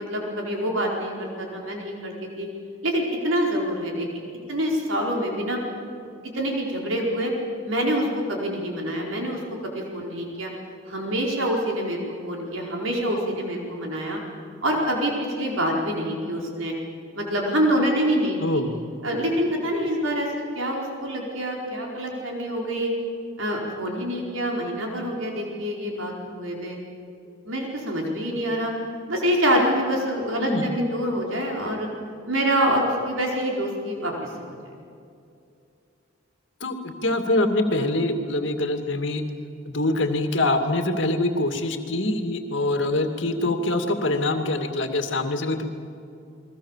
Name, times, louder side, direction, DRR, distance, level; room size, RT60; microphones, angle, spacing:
voice 1, 0.0-2.5 2.8-4.1 4.5-5.6 6.3-7.3 7.6-10.5 10.9-12.0 12.3-14.2 14.6-16.7 17.1-18.6 19.0-20.3 20.5-22.9 23.4-26.8 27.4-28.7 29.1-31.9 32.3-34.1 34.4-34.5, equal, 85° right, 0 dB, 4.7 m, -26 dB
voice 2, 18.4-18.7 30.4-30.7 36.6-39.2 39.7-45.6, left 2 dB, 65° left, 6 dB, 2.4 m, -24 dB
30.0 x 22.0 x 7.4 m, 2.5 s
head